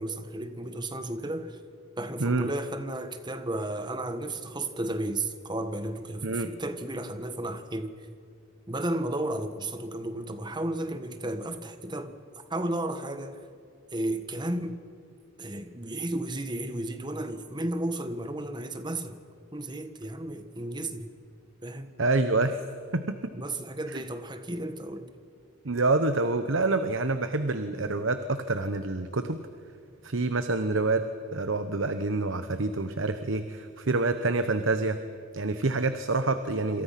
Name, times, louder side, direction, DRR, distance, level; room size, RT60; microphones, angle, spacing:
voice 1, 0.0-1.6 2.0-8.0 8.7-12.2 12.5-13.4 13.9-14.8 15.4-19.2 19.5-21.1 21.6-21.9 23.3-25.1, right 1 dB, 20° right, 1.5 m, -33 dB
voice 2, 22.0-22.6 22.9-23.0 23.9-24.0 25.6-29.4 30.0-31.0 31.3-35.0 35.3-36.8, right 3 dB, 70° right, 1.1 m, -27 dB
27.0 x 27.0 x 5.9 m
head